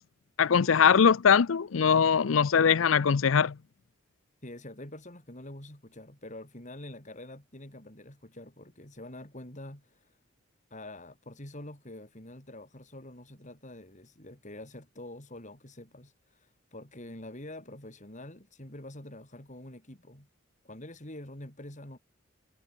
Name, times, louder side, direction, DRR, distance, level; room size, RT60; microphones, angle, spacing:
voice 1, 0.4-3.6, left 6 dB, 85° left, 0.5 m, -22 dB
voice 2, 4.4-10.2 10.7-20.3 20.6-22.0, left 1 dB, 40° left, 6.2 m, -46 dB
head